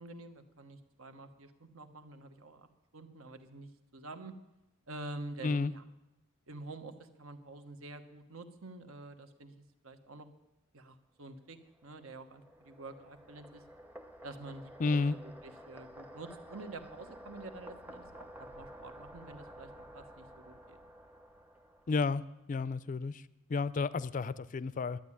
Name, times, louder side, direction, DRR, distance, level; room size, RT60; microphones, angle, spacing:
voice 1, 0.0-2.7 2.9-4.3 4.9-5.8 6.5-10.3 10.7-13.6 14.2-20.8, right 2 dB, 70° right, 8 dB, 1.1 m, -48 dB
sound 1, 11.5-22.2, equal, 10° right, 0.8 m, -52 dB
voice 2, 14.8-15.1 21.9-22.2 22.5-23.2 23.5-25.0, left 4 dB, 35° left, 17 dB, 0.4 m, -31 dB
11.5 x 8.6 x 9.8 m, 0.96 s
head